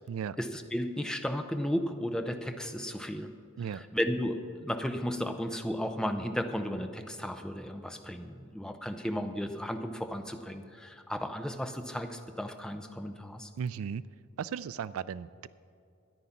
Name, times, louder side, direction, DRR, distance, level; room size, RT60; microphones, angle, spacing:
voice 1, 0.4-3.3 3.9-13.5, equal, 5° left, 6 dB, 0.6 m, -34 dB
voice 2, 13.6-14.0 14.4-15.5, right 7 dB, 75° right, 17 dB, 0.3 m, -36 dB
13.5 x 10.5 x 5.7 m, 2.4 s
head